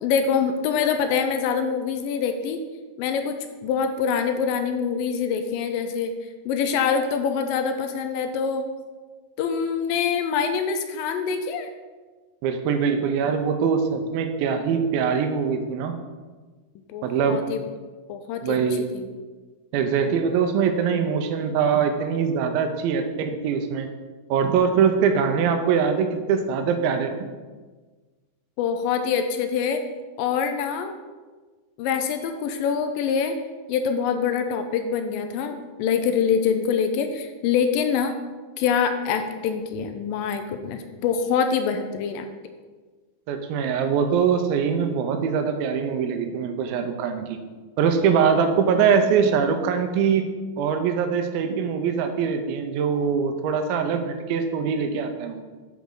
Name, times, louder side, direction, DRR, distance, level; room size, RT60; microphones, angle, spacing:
voice 1, 0.0-2.6 3.0-3.4 3.6-6.1 6.5-8.7 9.4-11.7 16.9-17.6 18.1-18.6 18.9-19.1 28.6-29.8 30.2-30.9 31.8-33.4 33.7-38.2 38.6-42.3, left 6 dB, 80° left, 7 dB, 2.1 m, -25 dB
voice 2, 12.4-15.9 17.0-17.4 18.4-18.9 19.7-23.9 24.3-27.1 43.3-47.4 47.8-50.3 50.6-55.4, right 6 dB, 80° right, 6 dB, 2.5 m, -23 dB
8.4 x 7.2 x 3.8 m, 1.4 s
omnidirectional pair, 4.4 m